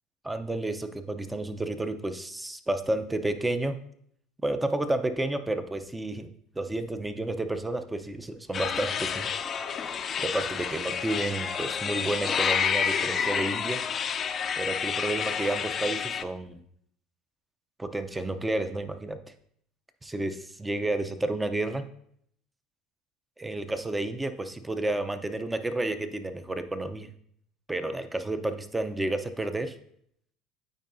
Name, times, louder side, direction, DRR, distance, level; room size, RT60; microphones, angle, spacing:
voice 1, 0.2-3.8 4.4-6.3 6.6-9.3 10.2-13.8 14.6-16.6 17.8-19.2 20.0-21.8 23.4-27.1 27.7-29.8, right 2 dB, 10° right, 9 dB, 0.6 m, -31 dB
sound 1, 8.5-16.2, left 7 dB, 40° left, 0.4 m, -29 dB
9.1 x 4.6 x 2.6 m, 0.68 s
supercardioid pair, 90°, 0 cm